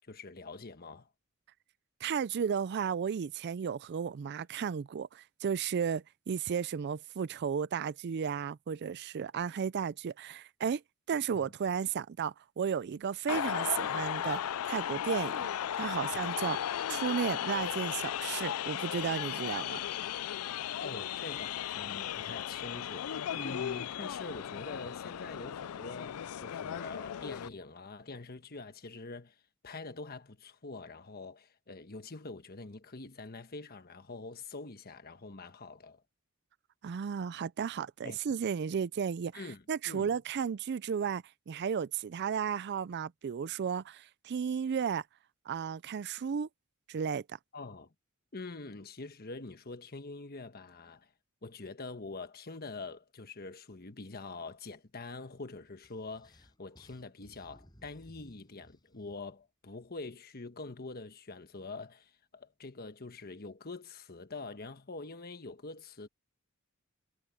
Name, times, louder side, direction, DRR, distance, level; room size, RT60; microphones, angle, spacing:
voice 1, 0.1-1.1 11.3-11.5 20.8-36.0 38.0-38.2 39.3-40.2 47.5-47.9 48.3-51.1 51.4-66.1, left 3 dB, 45° left, 1.3 m, -45 dB
voice 2, 2.0-10.8 11.1-15.5 15.8-16.6 16.9-19.8 36.8-45.0 45.5-46.5 46.9-47.4, right 7 dB, 50° right, 0.4 m, -34 dB
sound 1, 13.3-27.5, left 10 dB, 80° left, 0.4 m, -36 dB
sound 2, 55.8-59.4, equal, 20° left, 6.8 m, -60 dB
head